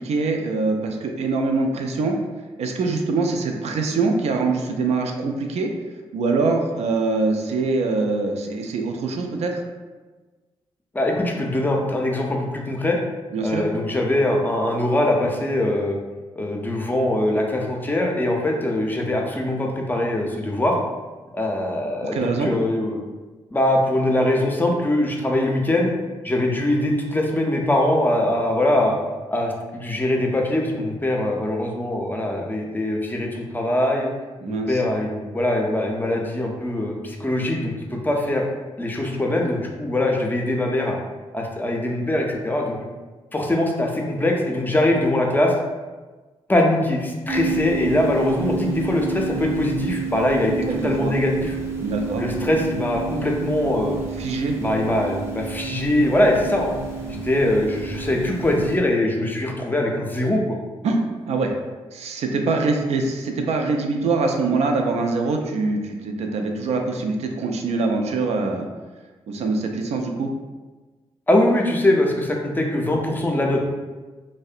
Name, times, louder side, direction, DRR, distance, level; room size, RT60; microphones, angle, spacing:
voice 1, 0.0-2.2 2.6-9.6 13.3-13.7 22.0-22.5 34.4-34.8 50.7-51.1 51.8-52.2 54.2-54.6 60.8-61.0 61.3-61.5 61.9-68.7 69.3-70.3, right 3 dB, 70° right, 3 dB, 0.4 m, -24 dB
voice 2, 10.9-13.0 13.4-16.0 16.4-20.8 21.3-23.0 23.5-25.9 26.2-28.9 29.3-34.1 34.5-38.4 38.8-41.0 41.3-42.8 43.3-45.5 46.5-51.6 52.2-54.0 54.6-56.8 57.1-60.6 71.3-73.6, left 1 dB, 15° left, 1 dB, 0.5 m, -22 dB
sound 1, 47.3-58.8, right 5 dB, 25° right, 0.7 m, -30 dB
2.6 x 2.1 x 2.4 m, 1.3 s
supercardioid pair, 55°, 12 cm